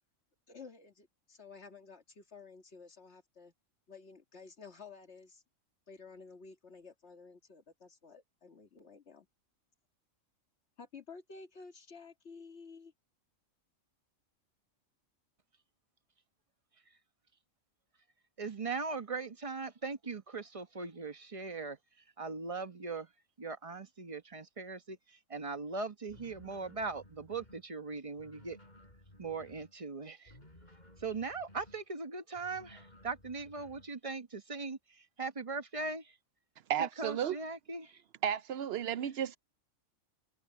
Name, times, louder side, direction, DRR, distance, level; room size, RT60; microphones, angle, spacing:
voice 1, 0.5-3.5 3.9-5.4 5.9-9.3 10.8-12.9, left 4 dB, 55° left, 2.2 m, -52 dB
voice 2, 18.4-21.8 22.2-23.1 23.4-25.0 25.3-28.6 29.2-30.3 31.0-34.8 35.2-36.1 36.8-37.9, right 4 dB, 25° right, 1.1 m, -39 dB
sound 1, 26.1-27.7 28.2-29.8 30.3-31.8 32.4-33.9, left 1 dB, 35° left, 5.6 m, -57 dB
voice 3, 36.7-37.4 38.2-39.4, right 9 dB, 65° right, 0.7 m, -33 dB
omnidirectional pair, 1.4 m